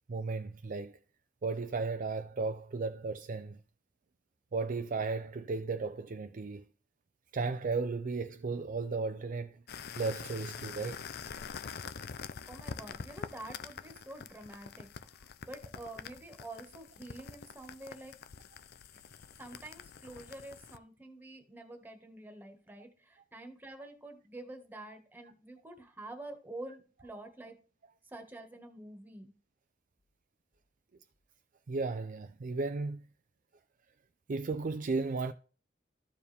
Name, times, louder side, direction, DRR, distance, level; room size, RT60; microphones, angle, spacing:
voice 1, 0.1-1.0 1.4-3.6 4.5-6.6 7.3-9.6 10.0-11.0 31.7-33.0 34.3-35.3, right 4 dB, 45° right, 0.5 m, -35 dB
sound 1, 9.7-20.8, left 6 dB, 60° left, 0.5 m, -45 dB
voice 2, 12.5-18.1 19.4-27.6 28.0-29.3, right 2 dB, 10° right, 1.5 m, -48 dB
14.0 x 4.7 x 3.4 m
head